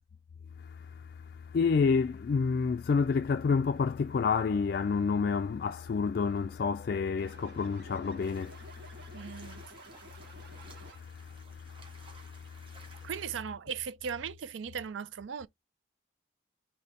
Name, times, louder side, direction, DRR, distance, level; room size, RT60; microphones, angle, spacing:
voice 1, 0.6-1.0 1.5-9.5 10.4-10.7 11.0-11.1 11.5-13.1, left 5 dB, 55° left, 0.3 m, -30 dB
sound 1, 7.2-11.3, right 1 dB, 50° right, 2.3 m, -52 dB
sound 2, 8.2-13.2, right 3 dB, 30° right, 1.4 m, -57 dB
voice 2, 9.1-9.6 13.0-15.5, right 7 dB, 85° right, 0.4 m, -38 dB
4.0 x 3.2 x 3.2 m
head